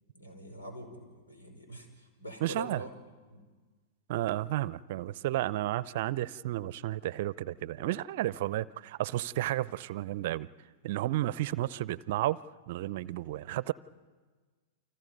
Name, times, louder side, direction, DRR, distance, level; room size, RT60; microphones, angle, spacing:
voice 1, 0.1-3.0 3.3-3.4, equal, 85° left, 5.2 m, -44 dB
voice 2, 2.4-2.8 4.1-10.5 10.8-12.4 12.7-13.7, right 15 dB, 55° right, 0.6 m, -32 dB
30.0 x 25.0 x 5.4 m
figure-of-eight pair, 100°, 0 cm